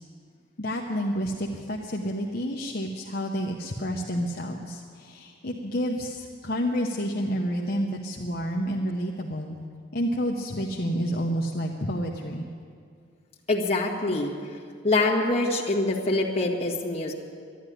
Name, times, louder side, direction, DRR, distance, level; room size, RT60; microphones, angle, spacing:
voice 1, 0.6-9.6 9.9-12.5, equal, 50° left, -1 dB, 0.9 m, -29 dB
voice 2, 13.5-14.6 14.8-17.1, left 2 dB, 30° left, -3 dB, 1.7 m, -25 dB
12.0 x 11.0 x 10.0 m, 2.2 s
head